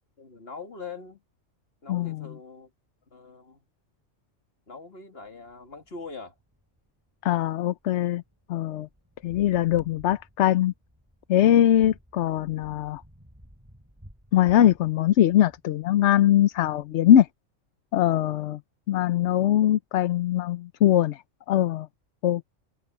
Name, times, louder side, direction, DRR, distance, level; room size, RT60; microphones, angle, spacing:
voice 1, 0.2-1.2 1.8-2.7 3.1-3.7 4.7-6.4, left 4 dB, 50° left, 2.5 m, -42 dB
sound 1, 5.2-17.3, equal, 10° right, 7.4 m, -54 dB
voice 2, 7.2-8.2 8.5-8.9 9.2-10.7 11.3-13.0 14.3-17.3 17.9-18.6 18.9-21.2 21.5-21.9 22.2-22.4, left 11 dB, 70° left, 0.9 m, -21 dB
omnidirectional pair, 1.3 m